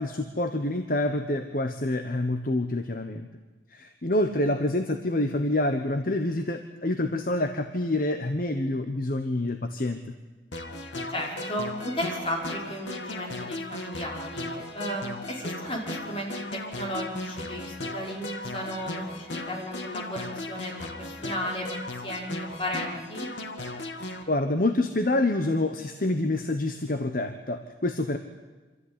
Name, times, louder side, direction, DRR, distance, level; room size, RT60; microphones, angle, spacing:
voice 1, 0.0-3.3 3.7-10.0 24.3-28.2, left 1 dB, 50° left, 7 dB, 1.1 m, -27 dB
sound 1, 10.5-24.2, left 2 dB, 85° left, 2.1 m, -36 dB
voice 2, 11.1-21.7 22.0-22.3 22.6-23.3, equal, 30° left, -2 dB, 5.3 m, -34 dB
25.5 x 14.0 x 9.9 m, 1.3 s
head